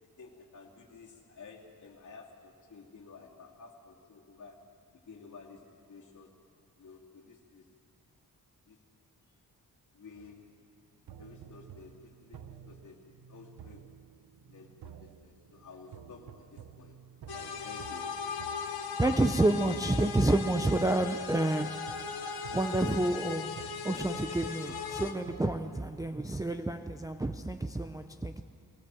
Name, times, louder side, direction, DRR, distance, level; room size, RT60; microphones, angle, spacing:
voice 1, 0.2-6.3 6.8-7.6 8.7-8.8 9.9-10.5 11.2-13.9 14.5-18.2 23.8-23.9, left 4 dB, 50° left, 2.6 m, -52 dB
sound 1, 10.2-10.6 11.1-26.4, right 8 dB, 75° right, 0.8 m, -51 dB
sound 2, 17.3-25.1, left 6 dB, 75° left, 1.4 m, -38 dB
voice 2, 19.0-22.1 22.5-28.4, right 2 dB, 10° right, 0.5 m, -29 dB
21.0 x 18.5 x 7.6 m
wide cardioid pair, 175°, 37 cm